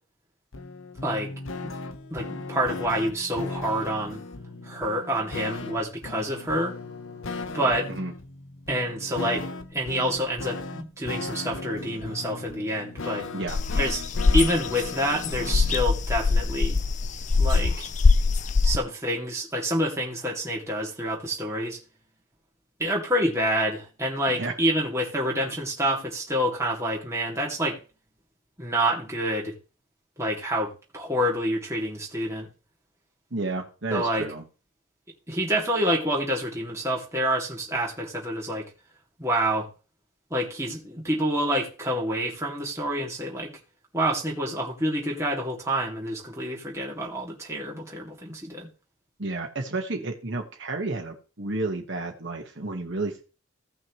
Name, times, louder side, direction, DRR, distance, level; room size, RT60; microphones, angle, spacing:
sound 1, 0.5-15.8, left 3 dB, 70° left, 0.9 m, -37 dB
voice 1, 2.1-4.2 4.6-6.8 7.5-7.9 8.7-9.5 9.7-13.3 13.7-14.0 14.3-16.8 17.4-17.9 18.6-21.8 22.8-27.8 28.6-29.5 30.2-32.5 33.9-34.3 35.3-38.7 39.2-39.7 40.3-43.5 43.9-48.7, equal, 15° right, 2.4 m, -27 dB
sound 2, 13.5-18.8, left 4 dB, 35° left, 0.4 m, -22 dB
voice 2, 33.3-34.4 49.2-53.2, right 2 dB, 55° right, 1.5 m, -31 dB
16.5 x 6.1 x 3.1 m
head